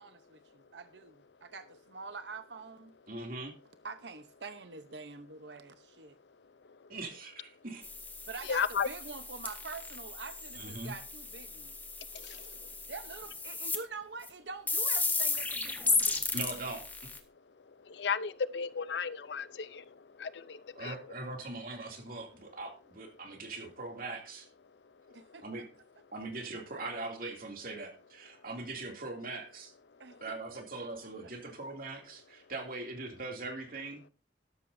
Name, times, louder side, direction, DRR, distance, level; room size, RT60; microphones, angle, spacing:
voice 1, 0.0-2.9 3.8-6.1 8.3-11.7 12.9-16.3 25.1-25.4 30.0-30.9 31.4-31.5, right 4 dB, 80° right, 0.9 m, -46 dB
voice 2, 3.1-3.5 6.9-7.9 10.5-10.9 16.3-16.8 20.8-24.4 25.4-25.7 26.1-29.7 30.2-34.0, right 2 dB, 55° right, 2.7 m, -41 dB
sound 1, 7.8-13.8 14.2-14.3 14.7-17.2, left 3 dB, 10° left, 1.1 m, -34 dB
voice 3, 8.5-8.9 12.1-12.5 17.9-19.8 20.2-20.9, left 6 dB, 75° left, 0.6 m, -34 dB
12.5 x 12.0 x 2.7 m
head